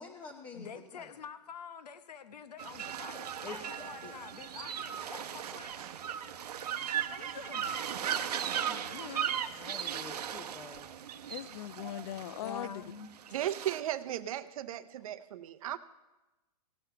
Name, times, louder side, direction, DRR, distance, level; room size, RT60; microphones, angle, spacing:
voice 1, 0.0-1.1 3.4-4.1 9.6-10.9, left 4 dB, 20° left, 2 dB, 0.8 m, -47 dB
voice 2, 0.5-5.7 7.1-7.8 8.7-9.4 12.4-13.1, left 6 dB, 85° left, 11 dB, 1.0 m, -47 dB
sound 1, 2.6-13.8, right 9 dB, 85° right, 0.8 m, -37 dB
voice 3, 11.3-12.7, left 12 dB, 40° left, 18 dB, 0.4 m, -40 dB
voice 4, 13.3-15.8, right 12 dB, 60° right, 12 dB, 0.6 m, -37 dB
16.5 x 6.6 x 5.7 m, 1.1 s
hypercardioid pair, 155°, 20 cm